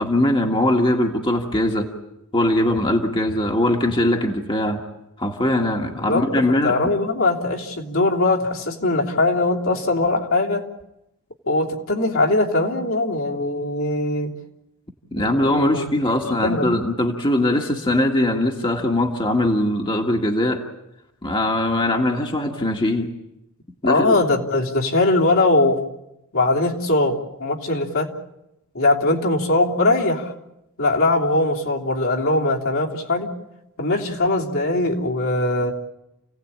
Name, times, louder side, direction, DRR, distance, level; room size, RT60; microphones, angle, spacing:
voice 1, 0.0-1.9 2.3-4.8 5.2-6.8 15.1-20.6 21.2-23.1 23.8-24.2, left 1 dB, 20° left, 1 dB, 1.8 m, -21 dB
voice 2, 5.9-10.6 11.5-14.3 15.2-15.9 16.2-16.6 23.8-25.8 26.3-28.1 28.7-30.3 30.8-33.3 33.8-35.7, left 2 dB, 65° left, -2 dB, 3.2 m, -21 dB
29.5 x 17.5 x 8.8 m, 0.90 s
head